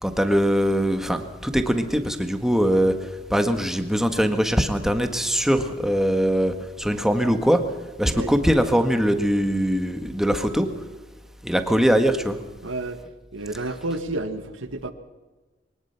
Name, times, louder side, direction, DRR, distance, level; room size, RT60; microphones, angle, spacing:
voice 1, 0.0-7.6 8.0-10.7 11.4-12.4, equal, ahead, 6 dB, 1.7 m, -22 dB
voice 2, 12.6-13.0 13.3-14.9, right 2 dB, 85° right, 8 dB, 1.9 m, -30 dB
23.0 x 19.5 x 5.9 m, 1.2 s
head